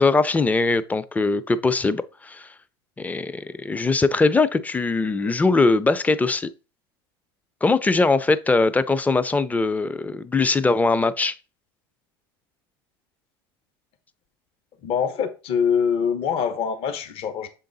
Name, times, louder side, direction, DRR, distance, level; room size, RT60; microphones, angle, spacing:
voice 1, 0.0-2.5 3.0-6.5 7.6-11.3, left 3 dB, 10° left, 0.5 m, -21 dB
voice 2, 14.8-17.5, left 7 dB, 50° left, 0.9 m, -24 dB
6.7 x 3.8 x 4.0 m
hypercardioid pair, 100°, 13 cm